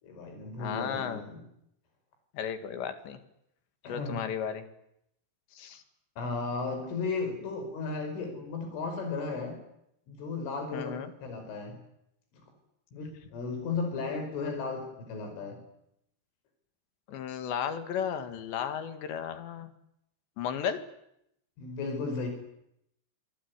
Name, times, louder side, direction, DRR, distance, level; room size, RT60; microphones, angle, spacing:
voice 1, 0.0-1.4 3.8-4.2 6.2-9.6 10.1-11.8 12.3-12.4 12.9-15.6 21.6-22.3, left 4 dB, 85° left, 6 dB, 7.9 m, -35 dB
voice 2, 0.6-1.2 2.3-3.2 3.9-4.6 5.5-5.8 10.7-11.1 17.1-19.7 20.4-20.8, left 8 dB, 70° left, 9 dB, 4.0 m, -34 dB
26.5 x 20.0 x 9.7 m, 0.79 s
omnidirectional pair, 5.5 m